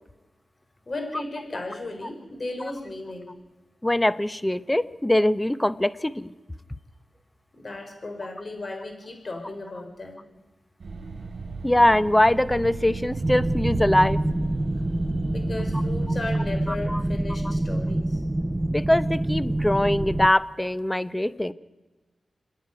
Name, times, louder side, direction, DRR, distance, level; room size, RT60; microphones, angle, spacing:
voice 1, 0.9-3.3 7.6-10.3 15.3-18.2, left 2 dB, 45° left, 4 dB, 4.9 m, -35 dB
voice 2, 3.8-6.3 11.6-14.2 16.7-17.0 18.7-21.5, left 1 dB, 15° left, 15 dB, 0.8 m, -22 dB
sound 1, 10.8-16.2, right 4 dB, 60° right, 3.3 m, -35 dB
sound 2, 13.2-20.3, right 1 dB, 20° right, 0.7 m, -26 dB
27.5 x 10.0 x 9.6 m, 1.2 s
cardioid pair, 55°, 0 cm